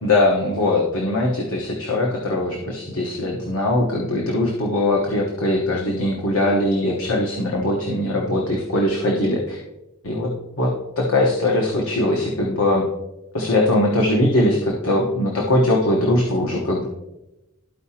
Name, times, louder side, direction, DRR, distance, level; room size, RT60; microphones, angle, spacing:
voice 1, 0.0-9.6 10.0-10.3 10.6-12.8 13.3-16.9, left 1 dB, 70° left, -2 dB, 1.1 m, -21 dB
13.0 x 4.8 x 2.8 m, 0.95 s
head